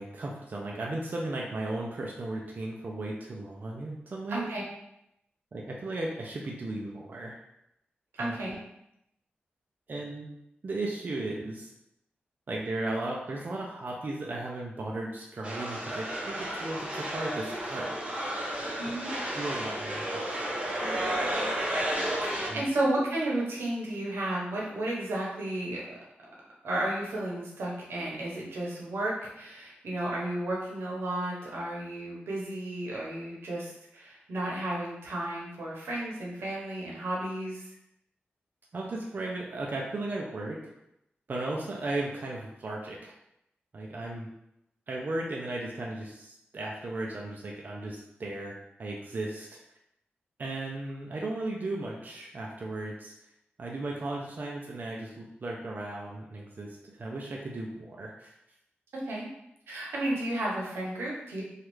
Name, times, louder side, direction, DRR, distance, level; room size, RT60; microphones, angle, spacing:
voice 1, 0.0-4.4 5.5-7.4 8.2-8.4 9.9-10.3 10.6-11.7 12.5-18.0 19.3-20.3 22.5-22.6 38.7-40.7 41.3-43.1 43.7-44.3 44.9-49.6 50.4-53.1 53.6-58.3, right 2 dB, 50° right, -2 dB, 0.4 m, -36 dB
voice 2, 4.3-4.6 8.1-8.6 18.8-19.1 22.5-25.8 26.6-37.7 58.9-59.3 59.7-61.4, right 1 dB, 85° right, -3 dB, 0.8 m, -33 dB
sound 1, 15.4-22.5, right 1 dB, 30° right, 0.8 m, -32 dB
3.0 x 2.4 x 3.1 m, 0.81 s
cardioid pair, 70°, 4 cm